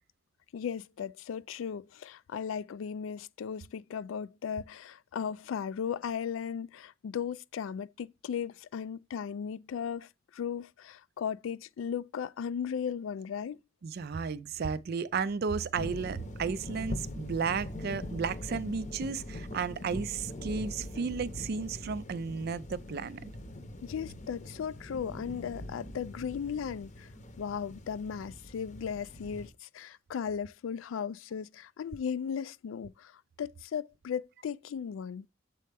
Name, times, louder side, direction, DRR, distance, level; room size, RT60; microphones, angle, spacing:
voice 1, 0.5-13.6 23.8-27.1 27.4-35.3, left 7 dB, 75° left, 0.3 m, -36 dB
voice 2, 13.8-23.2, right 5 dB, 50° right, 0.4 m, -33 dB
sound 1, 15.7-29.5, left 1 dB, 35° left, 0.7 m, -42 dB
7.5 x 4.3 x 3.4 m
head